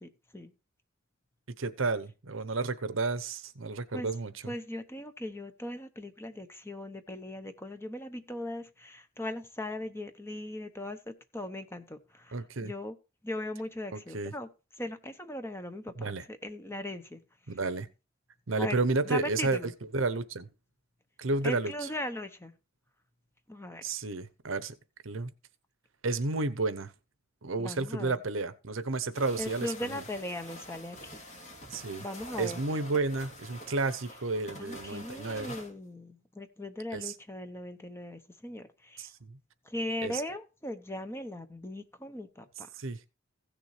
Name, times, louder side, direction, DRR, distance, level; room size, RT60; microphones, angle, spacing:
voice 1, 0.0-0.5 3.9-4.1 4.5-13.0 13.2-14.5 14.8-17.2 18.6-18.8 19.0-19.7 21.4-22.5 23.5-23.8 27.6-28.2 29.4-31.2 32.0-32.6 34.6-39.1 39.6-42.7, left 1 dB, 10° left, 1.0 m, -39 dB
voice 2, 1.6-4.5 12.3-12.7 13.9-14.3 16.0-16.2 17.5-17.9 18.5-20.5 21.2-21.9 23.8-24.8 25.0-25.3 26.0-26.9 27.4-30.0 31.7-32.0 32.4-35.5 36.9-37.1 39.0-39.4 40.0-40.2 42.8-43.0, right 3 dB, 70° right, 0.8 m, -32 dB
sound 1, 29.1-35.7, left 1 dB, 35° left, 3.2 m, -47 dB
16.0 x 6.9 x 3.2 m
head